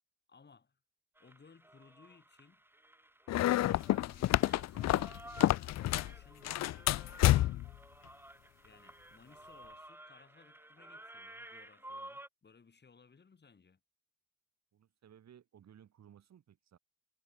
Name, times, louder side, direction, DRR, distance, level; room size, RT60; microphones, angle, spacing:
voice 1, 0.3-0.8 1.2-2.6 3.5-7.0 8.6-13.8, left 5 dB, 35° left, 7.1 m, -62 dB
sound 1, 1.2-12.3, right 1 dB, 5° right, 4.2 m, -53 dB
sound 2, 3.3-6.1 6.4-7.7, left 15 dB, 60° left, 0.5 m, -29 dB
voice 2, 14.7-16.8, right 9 dB, 60° right, 5.2 m, -59 dB
cardioid pair, 90°, 30 cm